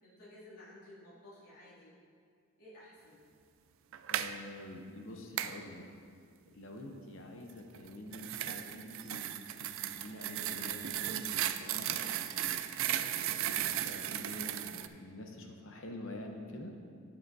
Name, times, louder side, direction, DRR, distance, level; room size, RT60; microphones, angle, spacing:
voice 1, 0.0-2.0 2.6-3.2 12.8-13.2, left 1 dB, 85° left, -8 dB, 2.5 m, -54 dB
sound 1, 3.9-4.3 5.4-5.6 7.7-14.9, right 11 dB, 65° right, 0.3 m, -36 dB
voice 2, 4.1-5.9 6.5-12.0 13.0-16.8, left 1 dB, 60° left, 3 dB, 0.8 m, -47 dB
11.5 x 8.8 x 2.7 m, 2.2 s
head